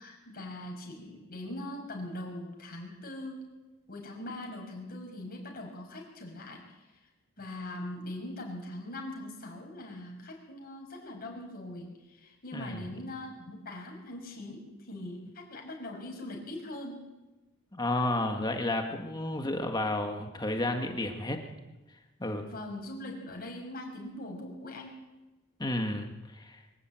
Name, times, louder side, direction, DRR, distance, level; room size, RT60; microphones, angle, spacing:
voice 1, 0.0-3.5 3.9-6.8 7.4-17.1 22.4-25.0, left 1 dB, 45° left, 0 dB, 6.0 m, -41 dB
voice 2, 17.7-21.4 22.2-22.4 25.6-26.6, left 1 dB, 20° left, 4 dB, 1.7 m, -31 dB
23.5 x 12.0 x 9.1 m, 1.1 s
head